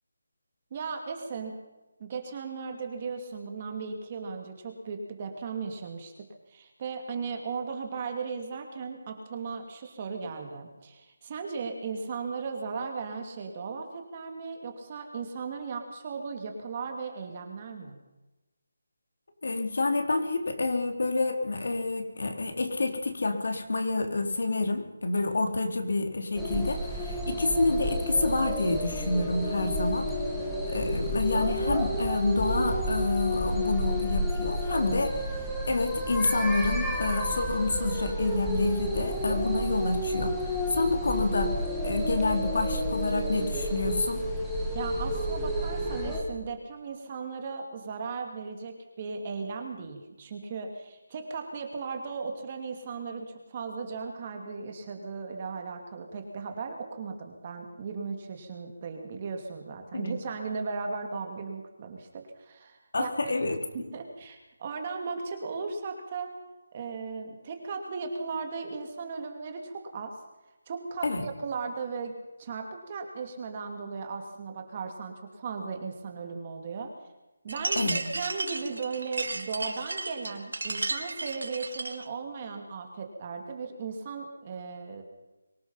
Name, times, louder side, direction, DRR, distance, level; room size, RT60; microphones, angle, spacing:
voice 1, 0.7-1.6 2.0-18.0 44.7-63.3 63.7-66.3 66.7-70.2 70.7-76.9 77.4-85.0, right 5 dB, 25° right, 4 dB, 2.8 m, -37 dB
voice 2, 19.4-30.1 30.7-35.2 35.7-40.4 40.7-41.6 41.8-44.2 59.9-60.1 62.9-63.6 71.0-71.2 77.8-78.0, left 3 dB, 60° left, 5 dB, 4.2 m, -28 dB
sound 1, 26.3-46.2, equal, ahead, 2.5 m, -31 dB
sound 2, 77.5-82.1, right 2 dB, 85° right, 3.1 m, -34 dB
24.0 x 18.5 x 5.8 m, 1.0 s
figure-of-eight pair, 175°, 0 cm